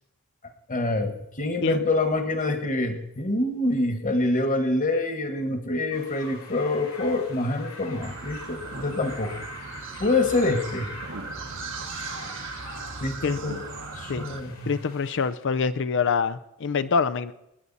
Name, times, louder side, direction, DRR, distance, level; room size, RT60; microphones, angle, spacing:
voice 1, 0.7-9.4 10.0-10.9 13.0-13.2 13.4-13.6 13.9-14.7, left 2 dB, 35° left, 7 dB, 1.5 m, -26 dB
sound 1, 5.9-15.3, left 3 dB, 85° left, 5.6 m, -44 dB
sound 2, 8.0-14.4, right 4 dB, 60° right, 1.4 m, -37 dB
voice 2, 14.7-17.3, left 5 dB, 55° left, 12 dB, 0.5 m, -25 dB
20.5 x 9.9 x 4.1 m, 0.85 s
head